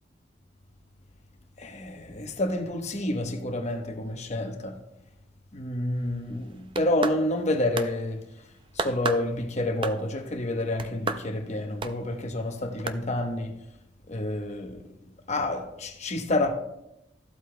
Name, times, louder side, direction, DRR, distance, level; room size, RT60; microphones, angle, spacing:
voice 1, 1.6-4.8 5.5-8.3 8.7-13.5 14.1-14.9 15.3-16.5, left 1 dB, 40° left, 1.0 m, -29 dB
sound 1, 6.5-7.5 7.8-7.9 8.8-9.3 9.8-10.2 10.8-11.3 11.8-12.0 12.9-13.0, right 3 dB, 30° right, 0.4 m, -31 dB
14.0 x 8.1 x 2.2 m
head